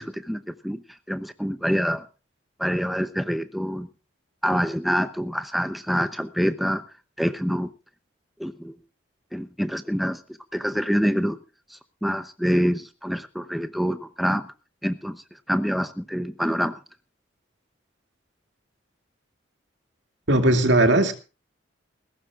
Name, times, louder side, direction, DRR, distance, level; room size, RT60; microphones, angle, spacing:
voice 1, 0.0-2.1 2.6-3.9 4.4-6.8 7.2-7.7 8.4-8.8 9.3-10.2 10.5-11.4 11.7-14.5 14.8-16.8, equal, ahead, 9 dB, 0.7 m, -26 dB
voice 2, 20.3-21.1, right 1 dB, 65° right, 6 dB, 2.5 m, -18 dB
21.0 x 17.0 x 2.5 m, 0.33 s
head